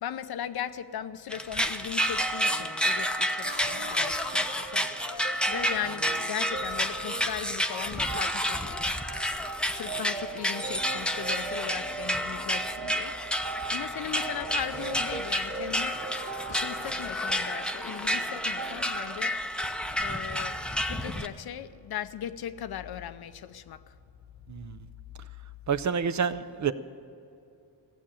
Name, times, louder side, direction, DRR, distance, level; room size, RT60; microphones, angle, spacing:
voice 1, 0.0-9.2 9.7-13.2 13.7-16.2 16.5-19.7 20.0-24.0, left 10 dB, 60° left, 0.7 m, -38 dB
sound 1, 1.3-21.3, equal, ahead, 0.7 m, -30 dB
sound 2, 2.4-18.8, right 3 dB, 70° right, 2.1 m, -40 dB
voice 2, 25.7-26.7, right 7 dB, 45° right, 0.6 m, -28 dB
15.5 x 7.5 x 9.9 m
cardioid pair, 70°, 42 cm